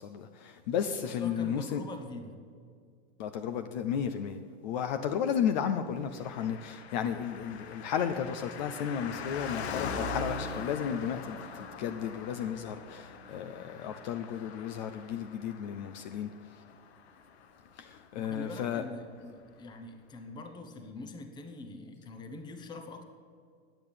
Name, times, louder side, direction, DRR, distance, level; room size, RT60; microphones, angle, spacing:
voice 1, 0.0-1.8 3.2-16.6 17.7-18.8, left 8 dB, 45° left, 8 dB, 0.6 m, -33 dB
voice 2, 1.2-2.4 18.2-23.0, left 2 dB, 15° left, 6 dB, 0.9 m, -44 dB
Car passing by, 6.1-18.0 18.2-18.3, left 5 dB, 70° left, 1.2 m, -41 dB
10.5 x 8.9 x 8.2 m, 2.1 s
supercardioid pair, 160°, 33 cm